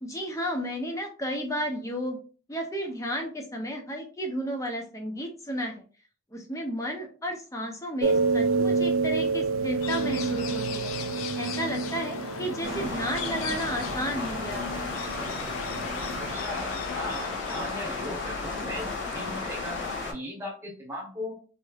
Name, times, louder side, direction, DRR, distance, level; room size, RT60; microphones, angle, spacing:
voice 1, 0.0-2.2 2.5-5.8 6.3-10.9 11.3-14.8, equal, 15° left, 3 dB, 0.6 m, -33 dB
sound 1, 8.0-16.3, right 4 dB, 80° right, 0.4 m, -29 dB
sound 2, 9.8-20.0, left 7 dB, 85° left, 0.4 m, -38 dB
sound 3, 12.6-20.1, left 3 dB, 60° left, 1.0 m, -34 dB
voice 2, 16.2-21.4, left 1 dB, 10° right, -2 dB, 1.1 m, -38 dB
3.2 x 2.9 x 2.4 m, 0.37 s
head